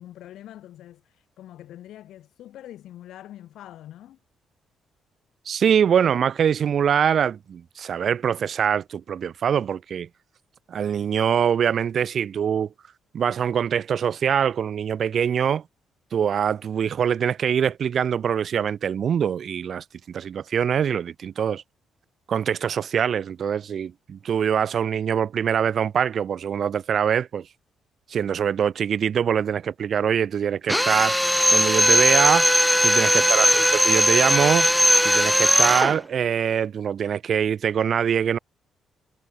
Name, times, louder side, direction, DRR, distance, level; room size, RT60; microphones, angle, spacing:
voice 1, 0.0-4.2 32.9-33.4, left 12 dB, 80° left, 2.9 m, -44 dB
voice 2, 5.5-10.1 10.7-12.7 13.1-15.6 16.1-21.6 22.3-27.5 28.1-31.2 31.5-32.5 32.8-34.7 35.0-38.4, right 8 dB, 55° right, 0.5 m, -23 dB
Drill, 30.7-36.0, equal, 5° left, 0.4 m, -19 dB
cardioid pair, 90°, 0 cm